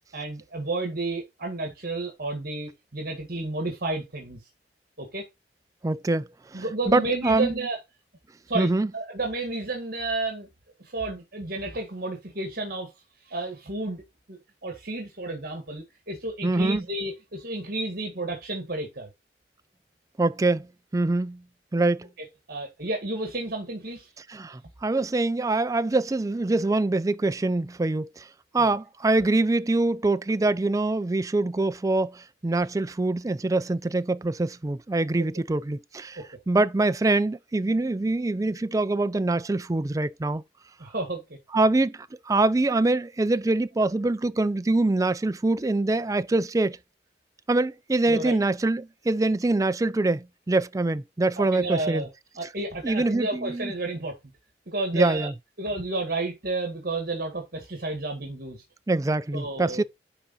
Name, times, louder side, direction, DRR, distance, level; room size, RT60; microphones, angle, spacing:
voice 1, 0.1-4.4 5.0-5.3 6.5-7.8 8.5-10.5 10.8-12.9 13.3-14.0 14.3-19.1 22.5-24.1 28.6-28.7 36.2-36.3 40.8-41.4 48.1-48.4 51.4-52.1 52.4-54.2 54.7-55.3 55.6-58.6 59.3-59.8, right 2 dB, 55° right, 1.8 m, -31 dB
voice 2, 5.8-7.5 8.5-8.9 16.4-16.8 20.2-20.7 20.9-21.4 21.7-22.1 24.3-28.3 28.5-36.2 36.5-40.4 41.5-46.8 47.5-52.1 52.8-53.7 54.9-55.3 58.9-59.8, right 2 dB, 20° right, 0.4 m, -24 dB
10.0 x 3.9 x 4.1 m
head